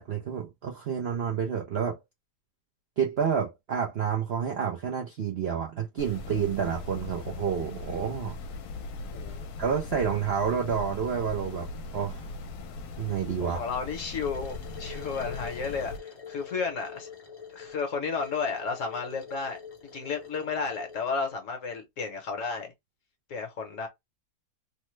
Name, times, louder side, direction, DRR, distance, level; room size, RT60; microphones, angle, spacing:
voice 1, 0.0-2.0 3.0-8.4 9.6-11.7 11.9-12.3 13.0-13.6, right 7 dB, 65° right, 0.6 m, -29 dB
sound 1, 6.0-16.0, left 3 dB, 80° left, 1.1 m, -39 dB
voice 2, 13.4-17.1 17.5-19.6 19.9-22.7 23.3-23.9, left 5 dB, 60° left, 1.1 m, -32 dB
sound 2, 14.2-21.3, left 6 dB, 40° left, 0.5 m, -45 dB
3.1 x 2.1 x 3.1 m
omnidirectional pair, 1.7 m